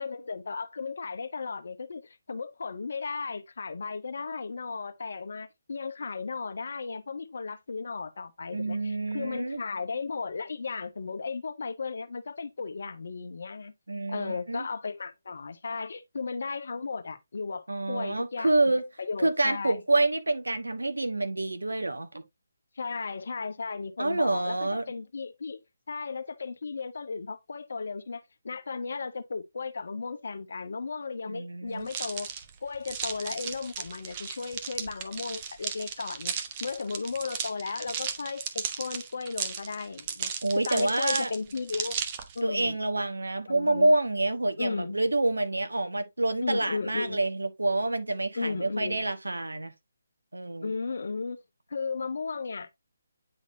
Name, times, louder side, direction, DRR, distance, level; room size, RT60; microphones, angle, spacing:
voice 1, 0.0-13.7 14.1-19.8 22.8-25.6 25.9-32.3 32.6-36.3 36.6-42.0 42.3-42.8 43.5-43.9 44.6-45.0 46.4-47.2 48.3-49.0 50.6-51.4 51.7-52.7, left 4 dB, 60° left, 0.9 m, -35 dB
voice 2, 8.5-9.6 13.9-14.7 17.7-18.8 19.2-22.2 24.0-24.9 31.3-31.9 40.4-41.3 42.4-49.7 50.3-50.7, right 2 dB, 80° right, 1.2 m, -27 dB
sound 1, 31.9-42.4, right 7 dB, 30° right, 0.9 m, -35 dB
9.6 x 4.0 x 2.7 m
figure-of-eight pair, 145°, 0 cm